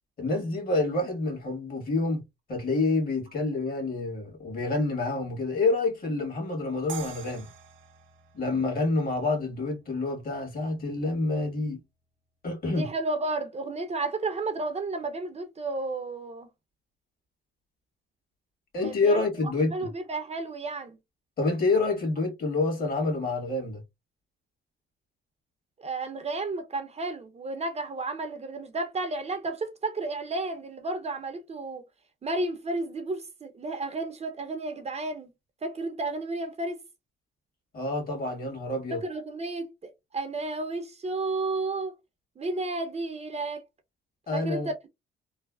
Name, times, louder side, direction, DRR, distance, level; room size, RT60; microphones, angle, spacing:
voice 1, 0.2-2.2 2.5-7.5 8.3-11.8 12.4-12.9 18.7-19.9 21.4-23.8 37.7-39.0 44.3-44.7, left 3 dB, 50° left, 1.6 m, -27 dB
sound 1, 6.9-10.0, right 8 dB, 80° right, 0.8 m, -45 dB
voice 2, 12.7-16.5 18.8-21.0 25.8-31.8 32.2-35.3 35.6-36.8 38.9-41.9 42.4-43.6 44.3-44.7, right 2 dB, 35° right, 0.5 m, -32 dB
3.1 x 2.0 x 2.2 m
cardioid pair, 90°, 20 cm